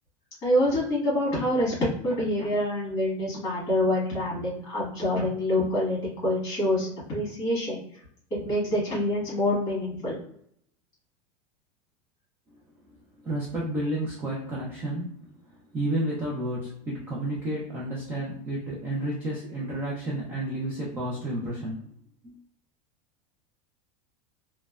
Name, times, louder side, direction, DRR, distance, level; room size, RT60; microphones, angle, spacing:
voice 1, 0.4-8.0 8.3-10.2, left 1 dB, 25° left, -6 dB, 1.5 m, -26 dB
voice 2, 13.2-15.2 15.5-21.8 22.2-22.3, right 1 dB, 10° right, -5 dB, 0.3 m, -31 dB
3.0 x 2.1 x 2.2 m, 0.66 s
supercardioid pair, 175°, 17 cm